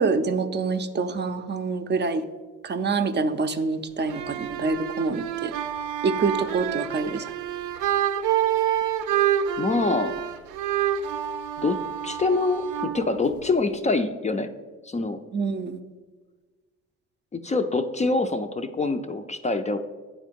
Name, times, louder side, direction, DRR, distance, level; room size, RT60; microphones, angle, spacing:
voice 1, 0.0-2.2 2.6-5.5 6.0-7.3 15.3-15.8, right 4 dB, 35° right, 8 dB, 0.5 m, -26 dB
sound 1, 4.0-13.8, right 10 dB, 85° right, 0.6 m, -28 dB
voice 2, 9.6-10.2 11.6-14.5 14.8-15.2 17.3-19.8, left 3 dB, 25° left, 8 dB, 0.4 m, -25 dB
9.1 x 3.7 x 5.1 m, 1.4 s
cardioid pair, 90°, 30 cm